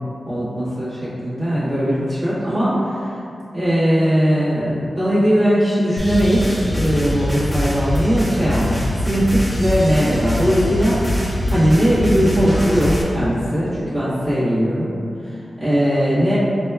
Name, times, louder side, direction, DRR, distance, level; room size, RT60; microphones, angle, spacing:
voice 1, 0.2-3.2 3.5-11.0 11.5-14.9 15.2-16.4, equal, 40° right, -13 dB, 1.4 m, -19 dB
sound 1, 6.0-13.0, left 1 dB, 5° left, 0.5 m, -23 dB
4.9 x 2.2 x 2.3 m, 2.5 s
wide cardioid pair, 105°, 0 cm